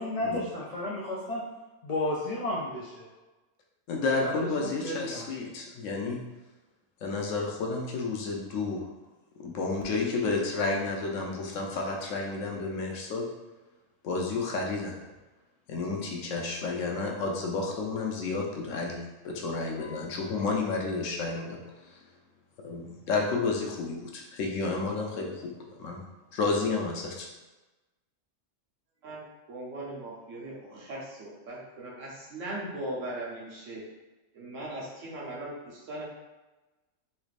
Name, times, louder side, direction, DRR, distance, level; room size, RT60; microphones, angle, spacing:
voice 1, 0.0-1.5 1.8-3.1 4.2-5.3, left 1 dB, 65° left, -6 dB, 0.3 m, -33 dB
voice 2, 3.9-6.2 7.0-8.9 9.4-13.2 14.0-14.9 15.7-22.0 22.6-25.3 25.7-26.0 26.3-27.3, left 3 dB, 85° left, 0 dB, 1.0 m, -31 dB
voice 3, 29.0-33.8 34.3-36.0, right 1 dB, 75° right, -4 dB, 1.2 m, -39 dB
3.2 x 3.2 x 2.4 m, 1.1 s
omnidirectional pair, 1.3 m